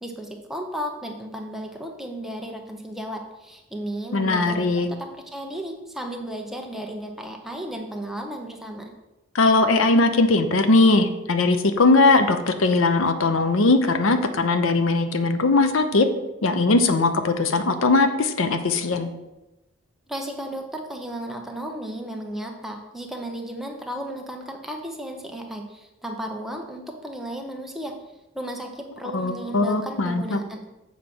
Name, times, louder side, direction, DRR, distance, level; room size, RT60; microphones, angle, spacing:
voice 1, 0.0-8.9 20.1-27.9 28.3-30.7, right 1 dB, ahead, 2 dB, 0.8 m, -34 dB
voice 2, 4.1-4.9 9.3-16.1 16.4-19.1 29.1-30.4, left 3 dB, 90° left, 9 dB, 0.7 m, -20 dB
7.2 x 5.0 x 6.0 m, 1.0 s
head